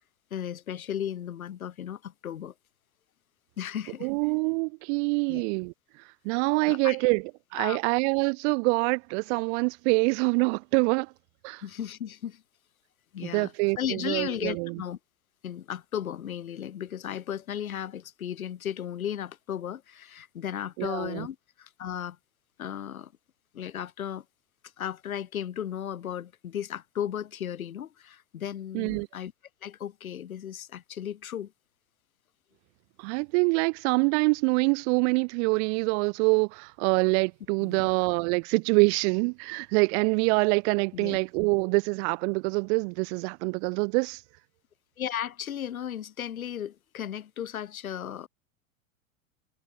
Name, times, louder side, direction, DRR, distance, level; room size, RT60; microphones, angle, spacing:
voice 1, 0.3-2.5 3.6-4.1 5.3-5.4 6.7-7.0 7.6-7.8 11.6-12.4 13.1-15.0 15.4-22.2 22.6-23.1 23.5-24.2 24.8-29.3 29.6-31.5 37.6-37.9 40.9-41.2 45.0-48.3, left 10 dB, 75° left, 5.8 m, -35 dB
voice 2, 4.0-5.7 6.2-7.2 7.5-11.1 11.4-11.6 13.2-14.8 20.8-21.3 28.7-29.1 33.0-44.2, right 32 dB, 55° right, 3.2 m, -25 dB
figure-of-eight pair, 90°, 42 cm